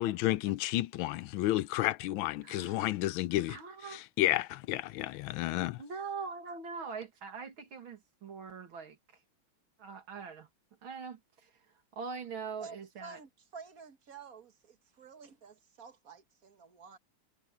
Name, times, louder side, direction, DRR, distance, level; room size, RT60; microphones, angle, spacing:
voice 1, 0.0-3.6 4.2-5.8, left 15 dB, 80° left, 1.4 m, -31 dB
voice 2, 2.4-2.8 3.5-4.0 5.8-9.0 9.8-10.5 10.8-11.5 11.9-13.2, right 5 dB, 80° right, 2.9 m, -42 dB
voice 3, 12.6-17.0, right 5 dB, 45° right, 1.8 m, -51 dB
omnidirectional pair, 2.2 m